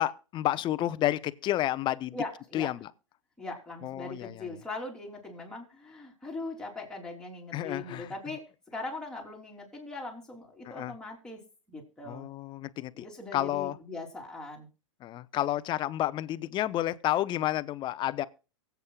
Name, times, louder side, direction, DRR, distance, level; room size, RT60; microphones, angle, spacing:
voice 1, 0.0-2.2 2.5-2.9 3.8-4.6 7.5-8.1 10.6-10.9 12.0-13.0 13.3-13.8 15.0-18.3, left 13 dB, 30° left, 0.7 m, -30 dB
voice 2, 2.1-2.7 3.4-8.4 8.7-11.4 11.7-12.3 12.9-14.7, left 2 dB, 5° left, 3.2 m, -40 dB
23.5 x 8.2 x 2.3 m
hypercardioid pair, 120°, 16 cm